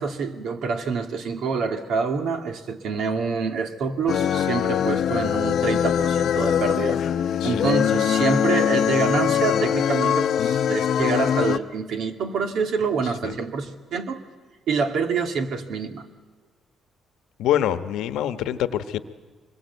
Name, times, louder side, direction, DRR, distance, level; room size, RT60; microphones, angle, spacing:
voice 1, 0.0-7.0 7.4-14.2 14.7-16.1, right 5 dB, 75° right, 6 dB, 2.1 m, -26 dB
sound 1, 4.1-11.6, left 9 dB, 65° left, 0.8 m, -22 dB
voice 2, 7.4-7.7 13.2-13.3 17.4-19.0, left 11 dB, 90° left, 11 dB, 1.2 m, -25 dB
24.5 x 22.0 x 8.2 m, 1.5 s
cardioid pair, 90°, 0 cm